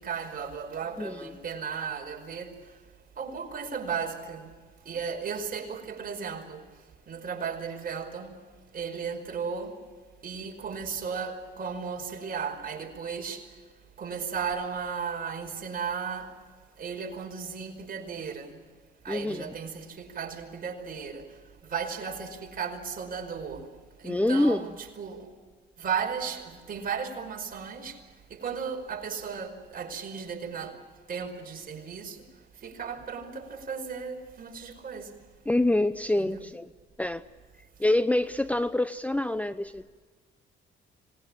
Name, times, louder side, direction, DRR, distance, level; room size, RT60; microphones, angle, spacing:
voice 1, 0.0-2.6 3.2-4.5 4.9-6.7 7.1-8.3 8.7-9.8 10.2-13.5 14.0-16.3 16.8-18.6 19.0-21.2 21.6-23.7 24.0-25.3 25.8-28.0 28.3-30.8 31.1-32.2 32.6-35.1 36.2-36.4, right 6 dB, 45° right, 5.3 m, -35 dB
voice 2, 1.0-1.3 19.1-19.5 24.0-24.7 35.5-36.7 37.0-37.2 37.8-39.9, left 1 dB, 5° left, 0.7 m, -26 dB
26.5 x 20.0 x 7.3 m
cardioid pair, 90°, 20 cm